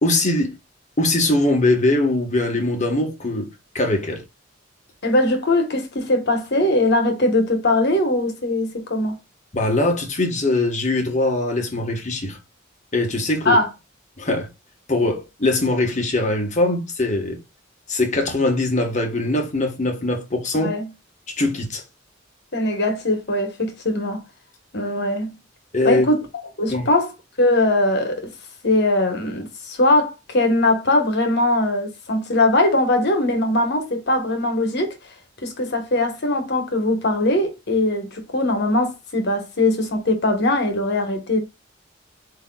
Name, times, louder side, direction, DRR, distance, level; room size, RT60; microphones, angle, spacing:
voice 1, 0.0-0.6 1.0-3.5 3.7-4.2 9.5-12.4 12.9-13.6 14.2-14.5 14.9-17.4 17.9-20.7 21.3-21.8 25.7-26.1 26.7-26.9, left 2 dB, 40° left, 1.2 m, -21 dB
voice 2, 5.0-9.2 13.4-13.7 20.6-20.9 22.5-24.2 24.7-25.4 25.8-26.2 26.6-27.1 27.4-28.3 28.6-35.0 35.4-41.4, left 1 dB, 60° left, 1.3 m, -20 dB
8.0 x 2.9 x 2.3 m
head